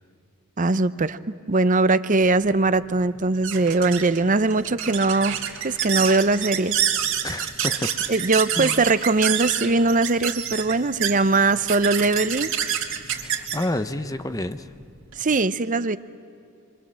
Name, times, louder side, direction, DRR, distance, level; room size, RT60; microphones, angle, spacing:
voice 1, 0.6-1.2 1.5-5.4 5.6-6.8 8.1-12.5 15.2-16.0, right 3 dB, 35° right, 14 dB, 0.7 m, -21 dB
sound 1, 2.3-15.2, right 9 dB, 60° right, 2.8 m, -28 dB
voice 2, 7.2-8.1 8.5-8.8 13.1-14.7, left 1 dB, 15° left, 11 dB, 0.6 m, -29 dB
28.5 x 24.5 x 7.6 m, 2.6 s
head